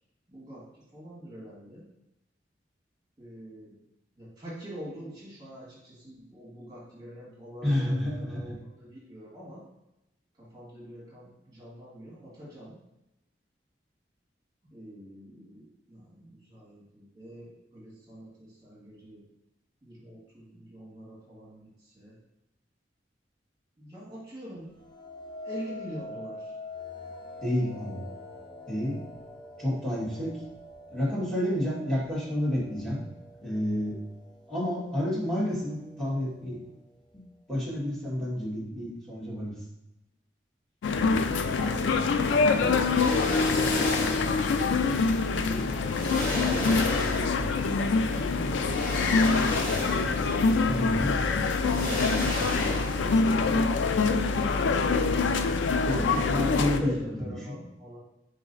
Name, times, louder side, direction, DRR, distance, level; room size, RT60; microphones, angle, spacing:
voice 1, 0.3-1.8 3.2-3.8 4.1-9.6 10.4-12.8 14.7-19.2 19.8-22.2 23.8-24.7 25.4-26.6 41.6-44.1 45.4-50.5 51.8-54.1 56.0-58.0, equal, 20° right, -7 dB, 1.6 m, -44 dB
voice 2, 7.6-8.5 27.4-28.1 28.7-29.0 29.6-30.4 30.9-33.0 33.4-34.0 34.5-36.6 37.1-37.2 37.5-39.5 50.7-51.3 55.8-57.6, left 1 dB, 5° left, -9 dB, 1.6 m, -30 dB
sound 1, 24.7-33.8 34.4-34.8, left 2 dB, 25° left, 0.5 m, -44 dB
sound 2, 40.8-56.8, left 4 dB, 80° left, 0.3 m, -25 dB
sound 3, 42.8-44.3 45.4-45.5 45.9-47.5 48.5-50.3 50.6-50.7 51.5-53.2 53.4-53.6, left 1 dB, 45° left, 1.1 m, -33 dB
3.9 x 3.1 x 3.9 m, 0.90 s
head